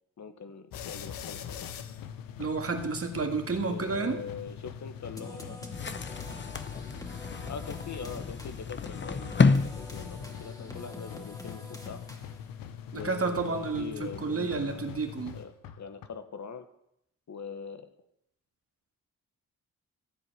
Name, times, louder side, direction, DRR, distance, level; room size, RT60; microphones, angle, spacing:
voice 1, 0.2-1.7 3.7-5.6 7.5-12.0 12.9-15.0 15.3-15.5 15.8-16.6 17.3-17.9, left 6 dB, 55° left, 9 dB, 1.4 m, -42 dB
sound 1, 0.7-16.1, left 8 dB, 85° left, 0.9 m, -43 dB
voice 2, 2.4-4.2 12.9-15.4, right 4 dB, 45° right, 6 dB, 1.9 m, -31 dB
sound 2, 5.2-12.5, left 1 dB, 10° left, 2.5 m, -46 dB
sound 3, 5.7-10.7, left 4 dB, 35° left, 0.9 m, -30 dB
13.5 x 4.8 x 8.8 m, 0.78 s
supercardioid pair, 60°, 34 cm